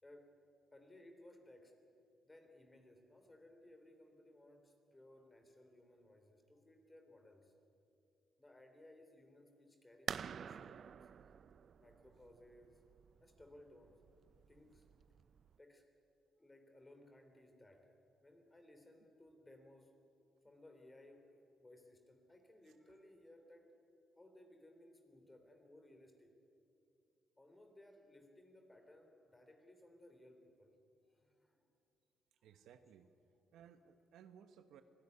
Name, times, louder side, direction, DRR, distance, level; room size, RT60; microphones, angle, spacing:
voice 1, 0.7-1.8 2.2-7.5 8.4-11.1 11.8-12.8 13.2-14.0 14.5-14.9 15.6-15.9 16.4-17.9 18.2-20.0 20.4-23.7 24.2-26.4 27.4-30.7 31.1-31.7, left 1 dB, 15° left, 5 dB, 3.3 m, -62 dB
sound 1, 10.1-15.6, right 7 dB, 55° right, 0.5 m, -49 dB
voice 2, 32.4-33.1 33.5-34.8, right 8 dB, 80° right, 9 dB, 1.1 m, -60 dB
25.5 x 15.5 x 9.7 m, 2.5 s
cardioid pair, 90°, 0 cm